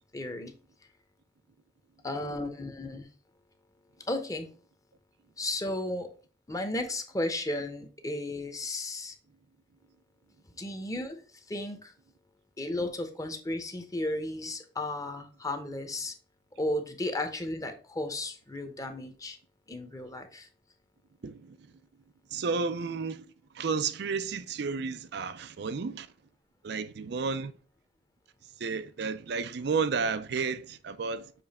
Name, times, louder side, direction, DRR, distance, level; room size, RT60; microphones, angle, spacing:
voice 1, 0.1-0.5 2.0-3.1 4.1-4.5 5.4-6.1 6.5-9.1 10.6-11.2 11.5-11.9 12.6-16.1 16.6-19.4 19.7-20.5, left 1 dB, 20° left, 0.9 m, -34 dB
voice 2, 21.2-21.7 22.3-23.3 23.5-26.1 26.6-27.5 28.6-31.3, right 5 dB, 65° right, 0.4 m, -32 dB
7.0 x 3.2 x 4.2 m
head